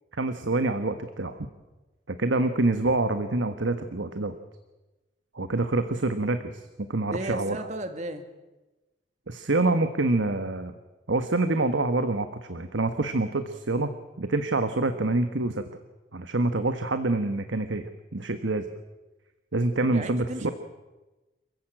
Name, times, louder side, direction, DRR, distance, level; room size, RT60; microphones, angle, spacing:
voice 1, 0.2-1.4 2.1-4.3 5.3-7.6 9.3-10.7 11.1-13.9 14.2-15.6 16.1-18.7 19.5-20.5, right 2 dB, 80° right, 9 dB, 1.3 m, -26 dB
voice 2, 7.1-8.2 19.9-20.5, right 1 dB, 40° right, 8 dB, 2.2 m, -34 dB
27.5 x 15.5 x 8.8 m, 1.1 s
head